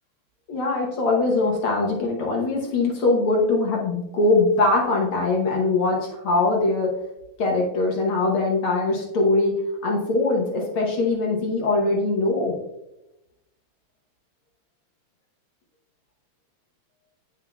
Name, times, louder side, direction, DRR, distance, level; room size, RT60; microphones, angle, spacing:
voice 1, 0.5-6.9 7.4-9.5 9.8-12.5, left 2 dB, 60° left, -1 dB, 1.5 m, -22 dB
8.8 x 5.7 x 2.3 m, 0.91 s
omnidirectional pair, 3.3 m